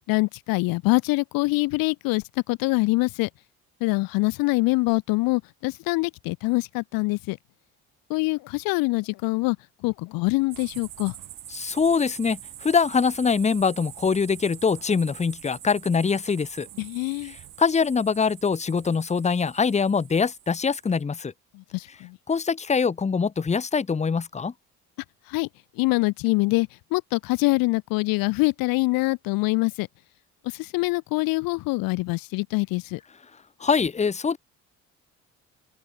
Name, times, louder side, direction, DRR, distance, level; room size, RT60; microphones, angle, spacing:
voice 1, 0.1-3.3 3.8-7.4 8.1-9.6 9.8-11.1 16.8-17.3 21.5-22.2 25.3-25.5 25.8-29.9 30.4-33.0, left 23 dB, 75° left, 0.5 m, -24 dB
sound 1, 10.5-21.0, right 12 dB, 65° right, 2.4 m, -45 dB
voice 2, 11.5-16.7 17.2-21.3 22.3-24.5 33.6-34.4, left 5 dB, 20° left, 0.7 m, -23 dB
open air
supercardioid pair, 70°, 35 cm